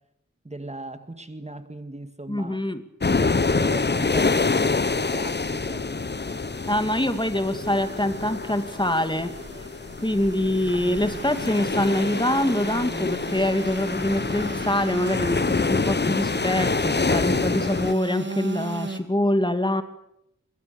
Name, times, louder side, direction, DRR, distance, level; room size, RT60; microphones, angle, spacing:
voice 1, 0.4-2.6 3.1-5.9, right 2 dB, 25° right, 1.9 m, -38 dB
voice 2, 2.3-2.8 6.7-9.3 10.0-19.8, left 1 dB, 15° left, 2.3 m, -24 dB
sound 1, 3.0-17.9, left 4 dB, 35° left, 0.9 m, -26 dB
Engine / Sawing, 5.2-19.0, right 2 dB, 40° right, 3.3 m, -39 dB
26.0 x 23.0 x 7.0 m
wide cardioid pair, 80°, 29 cm